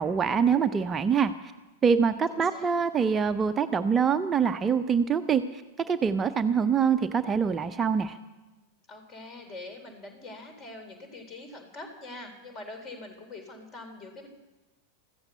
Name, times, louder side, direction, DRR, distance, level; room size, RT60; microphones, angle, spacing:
voice 1, 0.0-1.5 1.8-5.6 5.9-8.2, right 6 dB, 20° right, 9 dB, 0.6 m, -25 dB
voice 2, 2.3-2.7 8.9-14.3, left 2 dB, 30° left, 6 dB, 4.0 m, -44 dB
15.5 x 14.0 x 6.8 m, 1.1 s
figure-of-eight pair, 90°, 0 cm